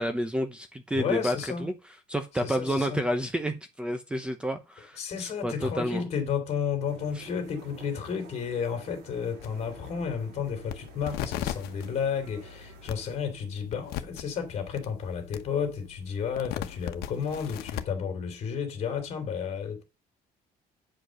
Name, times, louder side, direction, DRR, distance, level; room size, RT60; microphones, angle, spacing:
voice 1, 0.0-1.7 2.1-6.0, equal, 5° right, 0.9 m, -30 dB
voice 2, 0.9-1.7 2.4-3.0 5.0-19.8, left 7 dB, 45° left, 3.0 m, -32 dB
sound 1, 6.8-13.2, right 6 dB, 80° right, 3.9 m, -50 dB
sound 2, 9.4-17.8, left 12 dB, 90° left, 1.1 m, -40 dB
9.8 x 5.2 x 6.4 m
cardioid pair, 165°, 16 cm